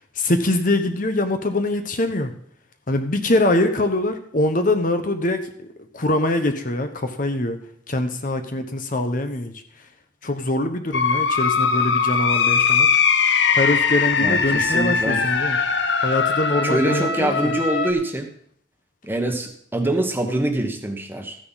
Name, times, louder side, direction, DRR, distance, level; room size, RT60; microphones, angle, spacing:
voice 1, 0.2-2.3 2.9-5.7 5.9-7.6 7.9-9.5 10.2-12.9 13.5-15.6 16.0-17.5, left 2 dB, 45° left, 7 dB, 1.1 m, -23 dB
sound 1, 10.9-17.9, left 5 dB, 70° left, 0.9 m, -20 dB
voice 2, 14.2-15.2 16.6-18.3 19.0-21.4, right 1 dB, 10° right, 4 dB, 1.3 m, -24 dB
13.5 x 9.6 x 4.1 m, 0.64 s
head